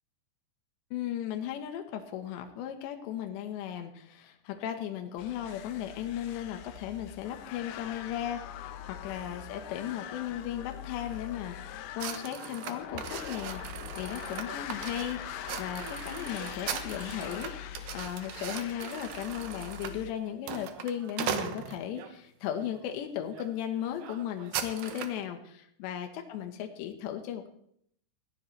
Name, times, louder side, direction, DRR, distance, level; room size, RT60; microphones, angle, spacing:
voice 1, 0.9-27.5, left 10 dB, 75° left, 5 dB, 3.4 m, -36 dB
sound 1, 5.2-20.1, left 11 dB, 90° left, 2.1 m, -43 dB
sound 2, 12.0-22.1 22.7-23.0 23.3-23.5 23.7-25.2, right 9 dB, 80° right, 2.1 m, -39 dB
20.0 x 15.5 x 3.3 m, 0.68 s
omnidirectional pair, 5.4 m